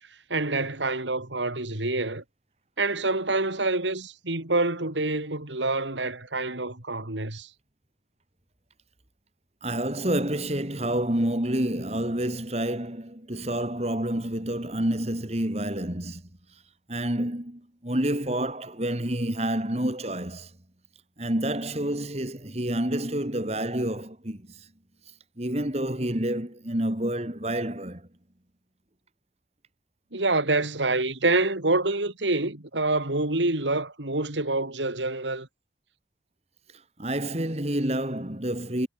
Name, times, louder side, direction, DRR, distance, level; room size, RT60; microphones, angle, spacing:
voice 1, 0.3-2.2 2.8-7.5 30.1-35.5, right 2 dB, 90° right, 3.8 m, -26 dB
voice 2, 9.6-16.2 16.9-20.5 21.2-24.7 25.4-28.1 37.0-38.9, right 1 dB, 35° right, 2.7 m, -28 dB
head